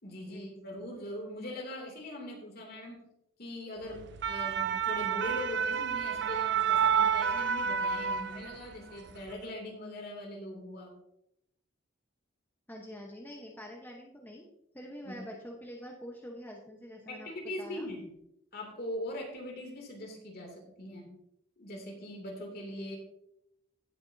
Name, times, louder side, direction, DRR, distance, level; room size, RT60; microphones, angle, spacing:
voice 1, 0.0-3.1 3.4-10.9 15.0-15.2 17.1-18.1 18.5-21.1 21.6-23.0, left 1 dB, 50° left, 1 dB, 2.7 m, -41 dB
sound 1, 4.0-8.7 9.1-9.3, right 7 dB, 60° right, 0.5 m, -29 dB
voice 2, 12.7-14.5 14.7-17.3 17.6-17.9, equal, 10° left, -1 dB, 1.0 m, -45 dB
16.5 x 6.9 x 2.7 m, 0.78 s
head